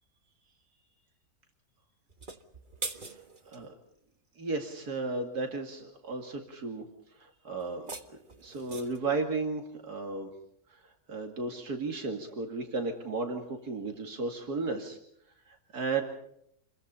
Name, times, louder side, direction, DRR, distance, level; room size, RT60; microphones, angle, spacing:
sound 1, 2.1-3.6 7.6-9.1, right 3 dB, 35° right, 1.7 m, -42 dB
voice 1, 2.9-3.7 4.4-6.9 7.1-10.3 10.7-15.0 15.5-16.0, right 3 dB, 90° right, 3 dB, 2.9 m, -35 dB
29.0 x 22.0 x 5.6 m, 0.72 s
omnidirectional pair, 1.6 m